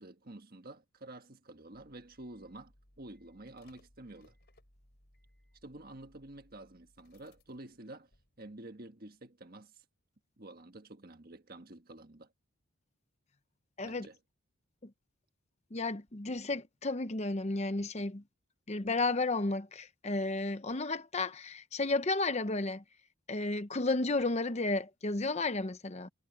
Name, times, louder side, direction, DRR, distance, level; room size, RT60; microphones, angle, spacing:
voice 1, 0.0-4.3 5.6-8.1 8.4-9.8 10.4-12.3 13.8-14.2, right 2 dB, 40° right, 1.5 m, -50 dB
sound 1, 1.7-8.8 9.1-9.2, left 1 dB, 45° left, 5.2 m, -66 dB
voice 2, 15.7-18.2 18.7-22.8 23.3-26.1, left 2 dB, 30° left, 0.7 m, -33 dB
head